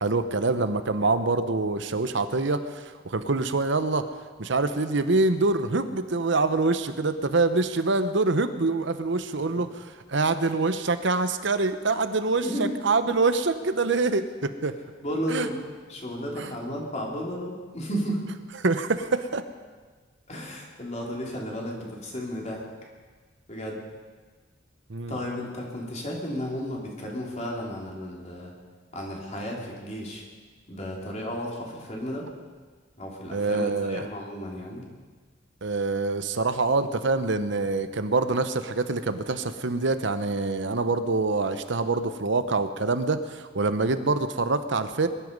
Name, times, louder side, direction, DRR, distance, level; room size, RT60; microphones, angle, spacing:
voice 1, 0.0-4.0 4.4-9.7 10.1-14.7 15.3-15.5 16.4-16.5 18.6-19.4 24.9-25.2 33.3-34.1 35.6-45.1, right 3 dB, 70° right, 10 dB, 0.9 m, -25 dB
voice 2, 12.4-12.8 15.0-18.3 20.3-22.7 23.5-23.8 25.1-28.5 28.9-30.2 30.7-32.3 33.0-34.9, equal, 35° left, -2 dB, 3.3 m, -33 dB
22.0 x 11.5 x 5.4 m, 1.4 s
head